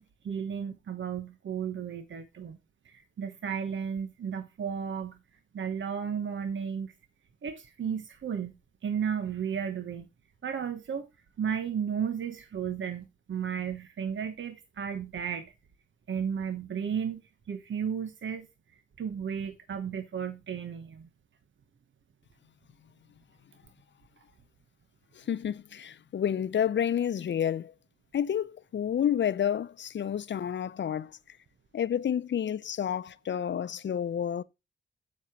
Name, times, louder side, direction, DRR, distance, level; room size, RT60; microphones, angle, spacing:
voice 1, 0.0-2.6 2.8-5.2 5.5-6.9 7.4-8.5 8.8-10.1 10.4-11.1 11.4-15.5 16.1-17.2 17.5-18.5 19.0-21.1, right 7 dB, 65° right, 1.1 m, -34 dB
voice 2, 25.2-27.7 28.1-31.2 31.7-34.4, left 9 dB, 60° left, 0.6 m, -30 dB
7.4 x 5.2 x 5.7 m
supercardioid pair, 40°, 21 cm